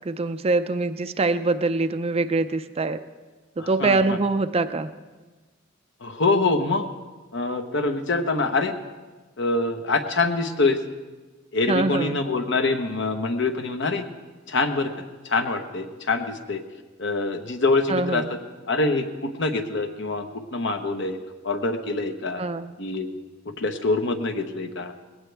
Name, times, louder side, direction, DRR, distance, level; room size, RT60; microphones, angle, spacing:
voice 1, 0.1-3.0 3.6-4.9 11.7-12.2 17.9-18.3 22.4-22.7, right 3 dB, 30° right, 11 dB, 0.5 m, -24 dB
voice 2, 3.6-4.2 6.0-6.8 7.3-8.7 9.4-10.8 11.5-14.0 14.5-14.9 15.2-16.6 17.0-18.4 18.7-20.3 20.5-21.2 21.4-22.4 22.8-23.1 23.6-24.9, left 3 dB, 60° left, 6 dB, 1.1 m, -25 dB
20.0 x 17.0 x 3.4 m, 1.3 s
head